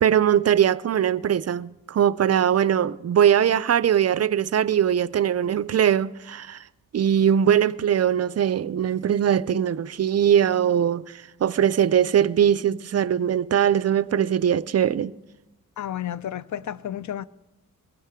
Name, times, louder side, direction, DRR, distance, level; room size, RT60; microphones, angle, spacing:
voice 1, 0.0-6.6 6.9-15.1, right 9 dB, 45° right, 0.4 m, -21 dB
voice 2, 15.8-17.3, left 10 dB, 55° left, 0.5 m, -31 dB
22.5 x 15.5 x 3.6 m
cardioid pair, 75°, 35 cm